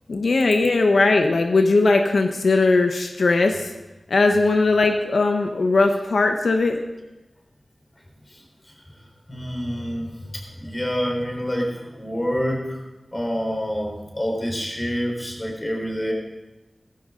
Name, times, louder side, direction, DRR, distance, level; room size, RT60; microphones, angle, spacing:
voice 1, 0.1-3.7 4.1-6.8, left 3 dB, 85° left, 4 dB, 1.0 m, -19 dB
voice 2, 9.3-12.8 13.1-16.1, equal, 20° left, 0 dB, 4.1 m, -27 dB
17.5 x 15.5 x 3.8 m, 1.1 s
wide cardioid pair, 90°, 0 cm